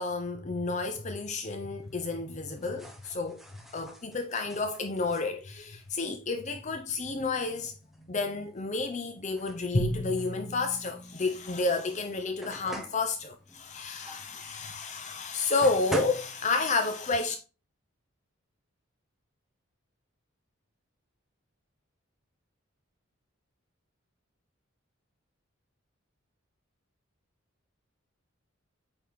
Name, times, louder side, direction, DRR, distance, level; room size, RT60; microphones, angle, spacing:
voice 1, 0.0-3.4 3.7-7.8 8.1-17.4, left 3 dB, 35° left, 0.6 m, -31 dB
sound 1, 1.4-16.9, right 1 dB, ahead, 0.8 m, -46 dB
Drum, 9.7-12.1, equal, 55° left, 1.5 m, -34 dB
8.6 x 3.8 x 3.5 m
head